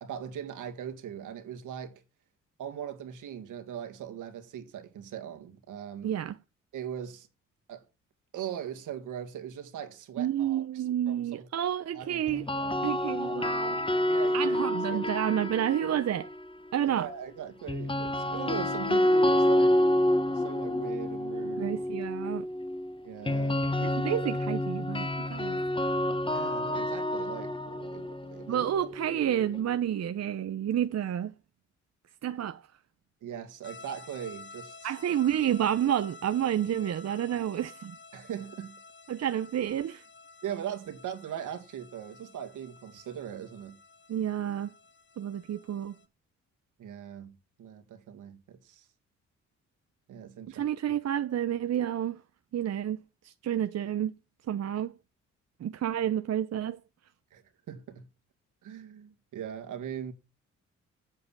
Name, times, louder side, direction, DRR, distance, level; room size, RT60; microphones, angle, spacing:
voice 1, 0.0-2.0 2.6-6.2 6.7-7.3 7.7-7.9 8.3-11.5 11.9-12.8 13.2-13.5 14.1-15.2 16.8-19.8 20.3-21.7 23.0-23.6 26.3-28.7 33.2-34.9 38.1-38.8 40.4-43.8 46.8-48.9 50.1-50.6 57.3-58.1 58.6-60.1, right 9 dB, 75° right, 2.2 m, -40 dB
voice 2, 6.0-6.4 10.2-12.5 12.8-13.8 14.3-16.3 16.7-17.1 21.6-22.4 23.8-25.6 28.5-31.3 32.2-32.6 34.8-38.0 39.1-40.0 44.1-44.7 45.2-45.9 50.5-52.2 52.5-54.2 54.5-54.9 55.6-56.8, right 10 dB, 55° right, 0.8 m, -30 dB
sound 1, 12.3-16.4 17.7-29.6, left 1 dB, 15° left, 1.1 m, -28 dB
sound 2, 33.6-46.1, left 4 dB, 35° left, 1.5 m, -51 dB
8.2 x 7.8 x 8.6 m
supercardioid pair, 65°, 31 cm